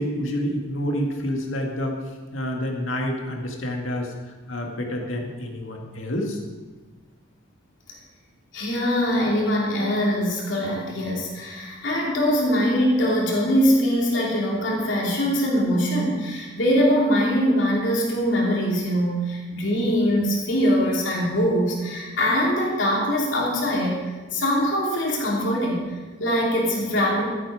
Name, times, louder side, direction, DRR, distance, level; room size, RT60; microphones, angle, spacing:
voice 1, 0.0-2.0 2.3-6.4, equal, 85° left, 1 dB, 2.0 m, -28 dB
voice 2, 8.5-24.0 24.3-27.3, equal, 70° left, -4 dB, 2.9 m, -22 dB
15.0 x 8.7 x 4.9 m, 1.3 s
head